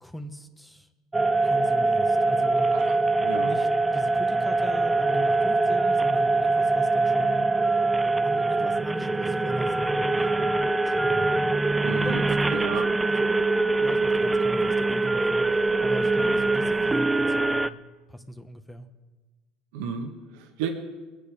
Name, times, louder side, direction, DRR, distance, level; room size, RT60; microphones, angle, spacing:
voice 1, 0.0-0.9 1.4-2.7 3.4-7.5 8.2-10.5 10.8-11.5 12.0-12.8 13.1-13.3 13.8-15.4 15.8-17.8 18.1-18.9, left 1 dB, 5° left, 5 dB, 1.2 m, -39 dB
sound 1, 1.1-17.7, right 3 dB, 15° right, 0.5 m, -23 dB
voice 2, 3.2-3.5 11.8-12.2 12.5-12.8 19.7-20.7, right 7 dB, 80° right, 3 dB, 1.6 m, -32 dB
22.0 x 9.2 x 5.1 m, 1.2 s
supercardioid pair, 95°, 0 cm